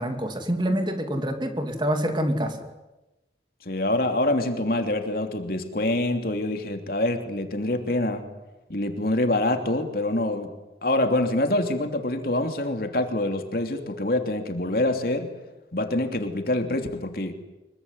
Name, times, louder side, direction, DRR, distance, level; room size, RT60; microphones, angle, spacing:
voice 1, 0.0-2.7, equal, 25° right, 6 dB, 2.8 m, -26 dB
voice 2, 3.6-8.2 8.7-10.5 10.8-15.3 15.7-17.3, left 1 dB, 55° left, 6 dB, 3.0 m, -25 dB
25.5 x 22.5 x 9.8 m, 1.0 s
head